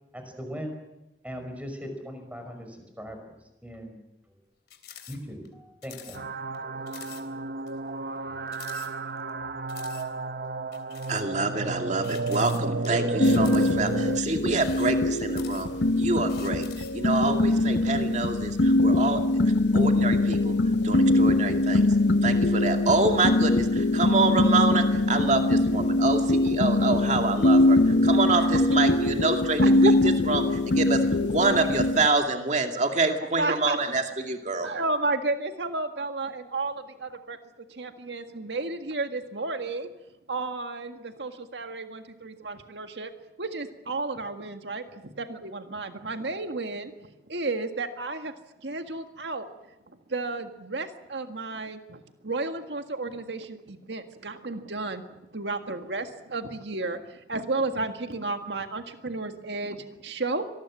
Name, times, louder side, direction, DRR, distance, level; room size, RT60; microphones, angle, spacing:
voice 1, 0.1-0.8 1.2-3.2 3.6-4.0 4.3-4.4 5.1-6.3 8.3-8.5 9.3-9.6, equal, 10° right, 5 dB, 5.4 m, -39 dB
sound 1, 4.7-5.2 5.4-5.5 5.8-6.2 6.5-6.6 6.9-7.2 7.7-7.8 8.5-9.3 9.7-10.1 10.7-11.3 12.0-12.9 13.2-13.9 14.5-15.9 16.3-17.0, left 10 dB, 60° left, 3.4 m, -46 dB
sound 2, 6.1-14.2, right 3 dB, 60° right, 0.9 m, -32 dB
voice 2, 11.1-22.0 22.2-34.7, right 3 dB, 40° right, 4 dB, 2.4 m, -27 dB
sound 3, 13.2-32.1, left 2 dB, 85° left, 0.9 m, -22 dB
voice 3, 33.4-33.8 34.6-37.4 37.7-39.9 40.3-43.1 43.4-46.9 47.3-48.3 48.6-49.5 49.9-55.0 55.3-60.5, right 3 dB, 80° right, 7 dB, 1.8 m, -32 dB
25.5 x 20.0 x 7.5 m, 0.98 s
head